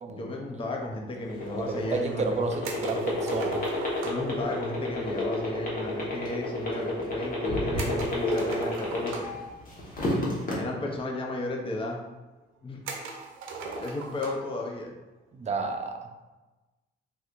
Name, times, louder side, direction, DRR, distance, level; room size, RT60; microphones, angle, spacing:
voice 1, 0.1-2.4 4.0-9.3 10.5-12.0 12.6-12.8 13.8-14.9, left 2 dB, 25° left, 0 dB, 0.6 m, -34 dB
sound 1, 1.2-9.4 9.8-10.5, left 2 dB, 45° left, 1.0 m, -29 dB
voice 2, 1.6-3.5 15.3-16.0, right 4 dB, 35° right, 4 dB, 0.5 m, -31 dB
sound 2, 2.6-4.4 7.8-9.5 10.6-10.7 10.9-11.0 11.8-11.9 12.9-14.5, right 3 dB, 85° right, 0.6 m, -39 dB
3.4 x 2.7 x 2.4 m, 1.1 s
cardioid pair, 90°, 20 cm